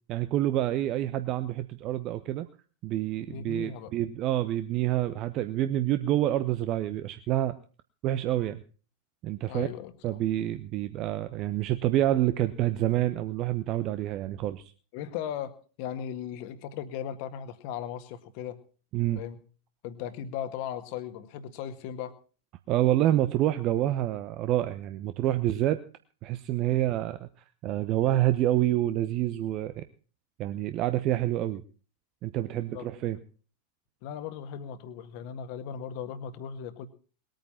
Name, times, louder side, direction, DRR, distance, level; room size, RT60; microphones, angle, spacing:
voice 1, 0.1-2.5 2.8-7.6 8.0-8.6 9.2-9.7 10.0-14.6 18.9-19.2 22.7-25.8 26.2-27.3 27.6-29.9 30.4-31.6 32.2-33.2, right 13 dB, 35° right, 11 dB, 0.9 m, -27 dB
voice 2, 3.3-3.9 9.4-10.2 14.9-18.6 19.2-19.4 19.8-22.2 32.6-32.9 34.0-36.9, left 9 dB, 45° left, 11 dB, 1.8 m, -37 dB
20.5 x 9.2 x 5.8 m, 0.39 s
figure-of-eight pair, 90°, 0 cm